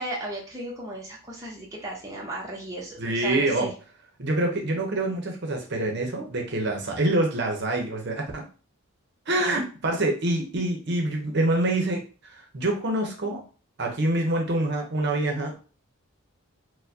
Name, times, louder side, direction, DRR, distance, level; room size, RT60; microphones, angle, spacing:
voice 1, 0.0-3.7, right 1 dB, 15° right, -3 dB, 0.7 m, -35 dB
voice 2, 3.0-3.7 4.2-8.4 9.3-13.4 13.8-15.6, right 2 dB, 50° right, 2 dB, 0.7 m, -26 dB
4.4 x 2.1 x 2.6 m, 0.36 s
head